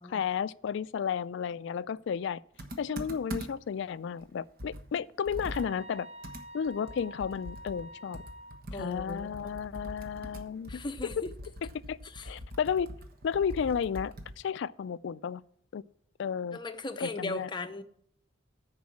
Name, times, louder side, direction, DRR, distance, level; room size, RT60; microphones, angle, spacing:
voice 1, 0.1-2.4 2.8-6.1 6.5-8.2 8.8-10.8 11.2-11.3 11.9-12.0 12.2-12.9 13.2-15.4 15.7-15.8 16.2-16.6 17.0-17.5, left 7 dB, 65° left, 0.3 m, -33 dB
Computer keyboard, 2.6-3.8 4.2-4.3 4.6-14.5, equal, 50° right, 1.2 m, -43 dB
sound 1, 5.4-8.6, equal, 35° right, 0.9 m, -48 dB
voice 2, 8.7-9.6 10.7-11.3 12.0-12.4 16.5-17.8, left 2 dB, 25° left, 0.6 m, -38 dB
10.5 x 4.7 x 7.2 m
head